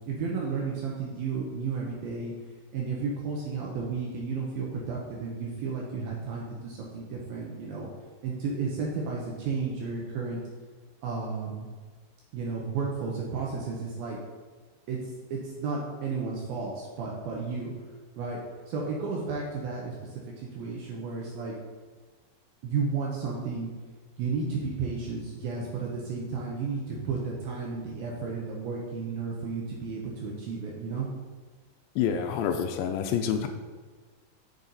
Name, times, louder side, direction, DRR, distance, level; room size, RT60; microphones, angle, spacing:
voice 1, 0.1-2.3 2.7-7.9 8.2-10.4 11.0-11.7 12.3-14.2 14.9-15.0 15.3-17.7 18.2-18.4 18.7-20.0 20.5-21.6 22.6-23.7 24.2-31.1, right 4 dB, 70° right, -3 dB, 2.4 m, -33 dB
voice 2, 32.0-33.5, left 8 dB, 85° left, 6 dB, 2.9 m, -27 dB
8.1 x 6.8 x 4.0 m, 1.4 s
omnidirectional pair, 5.3 m